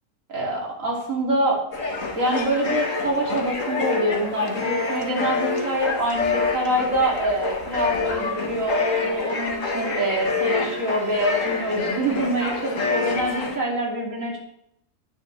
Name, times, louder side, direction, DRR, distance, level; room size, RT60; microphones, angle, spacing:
voice 1, 0.3-1.6 2.2-14.4, right 1 dB, 75° right, -2 dB, 3.1 m, -25 dB
sound 1, 1.7-13.6, left 4 dB, 70° left, 1.7 m, -27 dB
16.0 x 6.9 x 3.3 m, 0.76 s
omnidirectional pair, 1.4 m